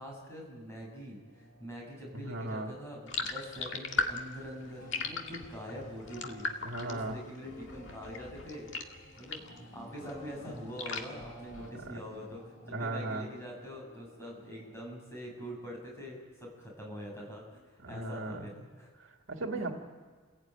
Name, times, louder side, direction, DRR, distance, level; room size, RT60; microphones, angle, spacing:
voice 1, 0.0-17.6 17.9-18.9, equal, 15° left, -3 dB, 7.3 m, -44 dB
sound 1, 1.2-15.8, equal, 45° left, 6.8 m, -54 dB
voice 2, 2.1-2.7 6.6-7.2 11.8-12.0 12.7-13.3 17.8-18.5 19.3-19.7, right 2 dB, 70° right, 3 dB, 2.2 m, -36 dB
sound 2, 3.1-9.6 10.0-12.0, left 4 dB, 65° left, 2.0 m, -38 dB
29.0 x 17.0 x 9.1 m, 1.5 s
head